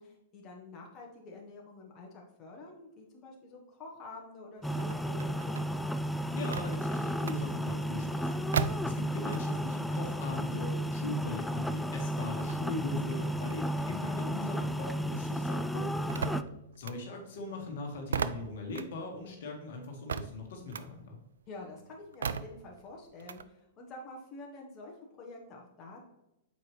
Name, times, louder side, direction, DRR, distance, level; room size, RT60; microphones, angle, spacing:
voice 1, 0.0-5.6 16.2-16.6 21.5-26.1, left 2 dB, 35° left, -1 dB, 1.3 m, -48 dB
sound 1, 4.6-16.4, equal, 5° left, 0.3 m, -33 dB
sound 2, 4.6-9.7 10.0-14.9 15.2-23.4, right 6 dB, 80° right, 0.4 m, -39 dB
voice 2, 6.3-16.1 16.8-21.2, left 2 dB, 65° left, 2 dB, 1.6 m, -40 dB
7.0 x 4.7 x 3.2 m, 0.90 s
hypercardioid pair, 115°, 0 cm